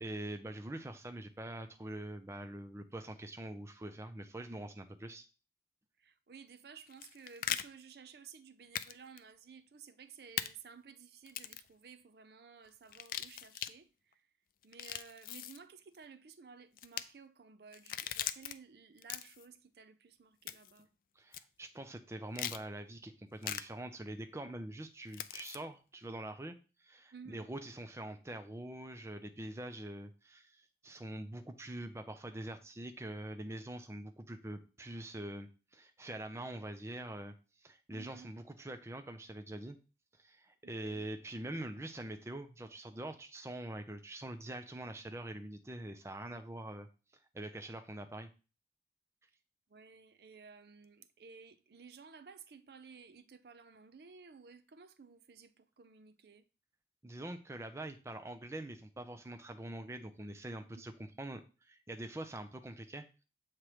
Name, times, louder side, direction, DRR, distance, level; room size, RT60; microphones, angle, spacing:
voice 1, 0.0-5.3 21.2-26.5 26.8-39.8 40.2-46.9 47.3-48.3 57.0-63.1, right 1 dB, 15° right, 0.5 m, -44 dB
voice 2, 6.0-14.3 14.6-20.9 27.1-27.5 37.9-38.3 40.6-41.1 49.7-56.4 60.7-60.9, right 6 dB, 65° right, 0.5 m, -55 dB
sound 1, 6.9-7.6 8.7-8.9 9.2-9.3 10.4-10.5 11.3-11.7 12.9-13.7 14.6-15.6 16.8-17.0 17.7-18.5 19.0-19.5 20.5-20.8 21.3-21.4 22.3-22.6 23.4-23.6 25.1-25.6, left 11 dB, 50° left, 0.3 m, -39 dB
7.3 x 3.1 x 4.8 m
head